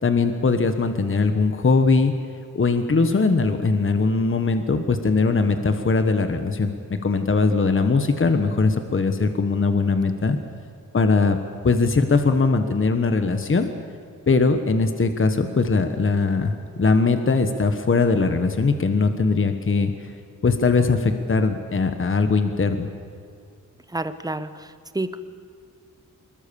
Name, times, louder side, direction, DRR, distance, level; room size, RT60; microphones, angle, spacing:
voice 1, 0.0-2.1 2.5-10.4 10.9-11.4 11.6-13.7 14.3-20.1 20.4-22.9, left 4 dB, 40° left, 8 dB, 1.4 m, -20 dB
voice 2, 23.9-25.2, right 2 dB, 10° right, 11 dB, 1.1 m, -29 dB
25.0 x 22.0 x 7.1 m, 2.3 s
wide cardioid pair, 115°, 33 cm